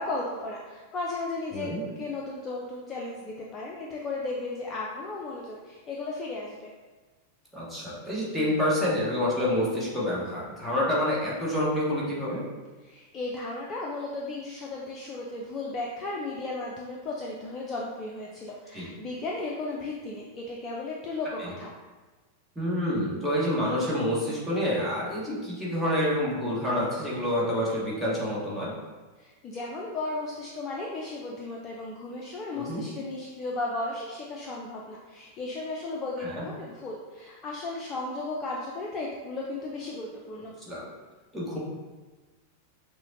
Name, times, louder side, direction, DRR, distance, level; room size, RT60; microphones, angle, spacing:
voice 1, 0.0-6.7 12.8-21.7 29.2-40.5, left 2 dB, 30° left, -2 dB, 0.4 m, -35 dB
voice 2, 1.5-1.8 7.5-12.4 18.7-18.9 21.4-21.5 22.5-28.7 32.5-32.8 36.2-36.4 40.6-40.9 41.3-41.6, left 1 dB, ahead, -8 dB, 1.2 m, -28 dB
6.2 x 2.1 x 2.7 m, 1.3 s
figure-of-eight pair, 90°, 0 cm